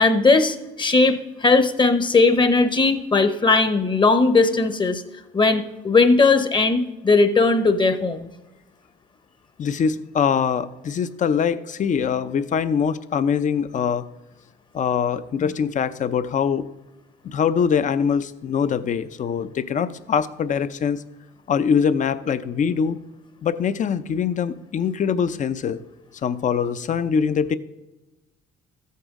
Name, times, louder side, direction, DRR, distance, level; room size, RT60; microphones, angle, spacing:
voice 1, 0.0-5.0 5.3-8.3 15.4-15.5, left 3 dB, 25° left, 9 dB, 0.9 m, -18 dB
voice 2, 9.6-14.0 14.7-16.6 17.2-21.0 21.5-23.0 23.4-25.8 26.2-27.5, left 7 dB, 45° left, 13 dB, 0.6 m, -23 dB
13.5 x 8.4 x 3.7 m, 1.0 s
cardioid pair, 95°, 18 cm